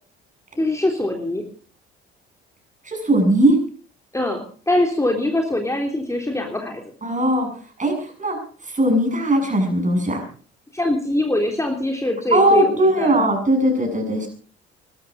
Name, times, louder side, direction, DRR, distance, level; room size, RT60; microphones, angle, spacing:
voice 1, 0.6-1.4 4.1-6.8 10.7-13.1, left 1 dB, 10° left, 2 dB, 3.4 m, -23 dB
voice 2, 2.8-3.6 7.0-7.5 7.8-10.2 12.3-14.3, right 1 dB, 25° right, 4 dB, 7.6 m, -19 dB
21.5 x 13.0 x 5.2 m, 0.42 s
figure-of-eight pair, 50°, 31 cm